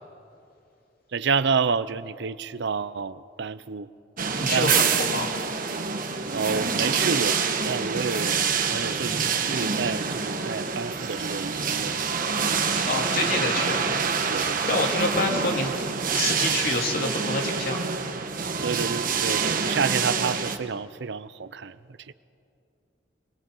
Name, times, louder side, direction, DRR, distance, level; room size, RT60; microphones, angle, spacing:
voice 1, 1.1-3.9 4.5-4.7 6.3-7.4 7.6-8.4 8.6-12.0 14.3-14.7 18.6-21.8 22.1-22.2, right 5 dB, 65° right, 15 dB, 0.6 m, -29 dB
sound 1, 4.2-20.6, right 5 dB, 50° right, 1.3 m, -26 dB
voice 2, 4.4-5.3 12.7-13.8 14.2-15.7 16.1-17.8, left 2 dB, 55° left, 1 dB, 2.9 m, -27 dB
28.0 x 21.5 x 5.6 m, 2.5 s
head